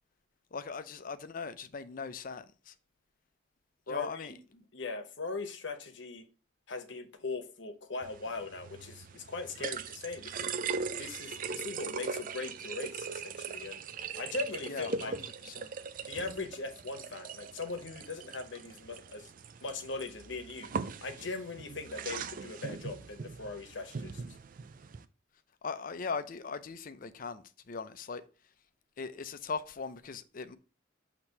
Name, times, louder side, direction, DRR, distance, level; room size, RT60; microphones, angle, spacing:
voice 1, 0.5-2.7 3.9-4.3 14.7-15.7 25.6-28.2 29.0-30.6, left 5 dB, 45° left, 0.5 m, -39 dB
voice 2, 3.9-6.3 6.7-10.5 11.0-13.8 14.2-15.7 16.0-19.3 19.6-20.7 21.0-24.4, left 3 dB, 65° left, 0.9 m, -40 dB
sound 1, 8.0-25.0, right 5 dB, 45° right, 0.4 m, -40 dB
6.3 x 2.9 x 5.4 m
head